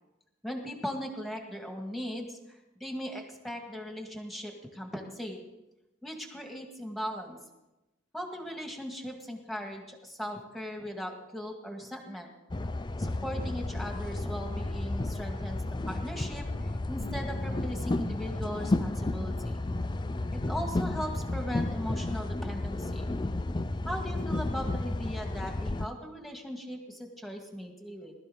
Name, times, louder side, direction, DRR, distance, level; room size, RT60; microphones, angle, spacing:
voice 1, 0.4-5.4 6.0-7.4 8.1-12.3 13.0-16.5 16.9-19.6 20.3-23.1 23.9-28.1, equal, ahead, 2 dB, 1.9 m, -38 dB
sound 1, 12.5-25.9, left 2 dB, 20° left, 0.5 m, -32 dB
20.0 x 13.0 x 3.9 m, 0.98 s
head